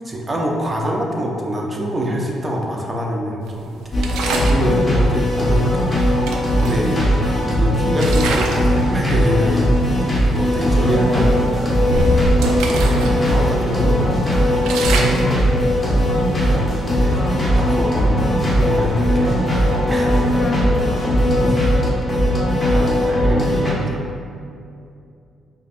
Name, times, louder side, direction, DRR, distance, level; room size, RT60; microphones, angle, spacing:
voice 1, 0.1-4.1 4.4-11.4 13.0-14.4 14.9-15.3 16.2-17.3 17.6-19.4 19.9-20.1 21.4-21.6 22.1-22.4 22.7-24.0, equal, 25° right, 0 dB, 0.5 m, -25 dB
sound 1, 3.9-23.7, equal, 20° left, 1.0 m, -18 dB
sound 2, 4.0-4.7 5.8-5.9 6.3-7.5 7.9-8.7 9.1-9.4 10.0-10.1 10.5-10.7 11.2-13.2 13.5-13.6 14.1-16.6, right 2 dB, 85° right, 0.3 m, -25 dB
sound 3, 10.4-21.5, equal, 5° right, 1.1 m, -29 dB
voice 2, 10.7-11.3 15.5-15.7 20.4-21.1, left 3 dB, 35° left, -1 dB, 0.5 m, -29 dB
5.0 x 2.2 x 2.5 m, 2.5 s
cardioid pair, 90°, 0 cm